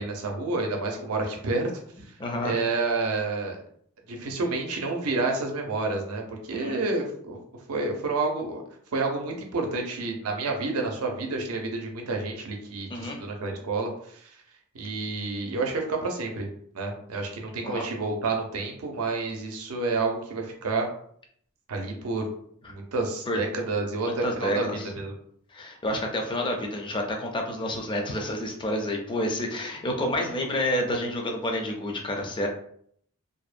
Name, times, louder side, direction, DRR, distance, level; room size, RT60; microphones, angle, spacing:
voice 1, 0.0-1.7 2.4-3.6 4.1-7.4 7.7-8.6 8.9-14.3 14.7-16.5 16.7-20.9 21.7-22.3 22.7-25.1, right 3 dB, 85° right, 2 dB, 0.6 m, -29 dB
voice 2, 2.2-2.6 6.5-6.8 12.9-13.2 17.6-17.8 23.3-23.4 24.0-24.9 25.5-32.5, left 1 dB, 20° left, 1 dB, 0.4 m, -29 dB
2.6 x 2.1 x 2.4 m, 0.64 s
head